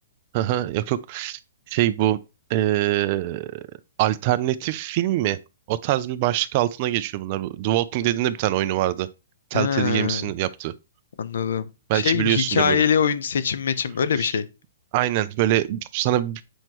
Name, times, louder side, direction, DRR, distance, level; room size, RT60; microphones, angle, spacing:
voice 1, 0.3-1.4 1.7-2.2 2.5-3.7 4.0-5.4 5.7-9.1 9.5-10.7 11.9-12.8 14.2-14.3 14.9-16.4, right 14 dB, 35° right, 0.5 m, -24 dB
voice 2, 9.5-10.3 11.2-14.5, left 7 dB, 75° left, 0.7 m, -23 dB
8.0 x 4.5 x 3.0 m
hypercardioid pair, 155°, 0 cm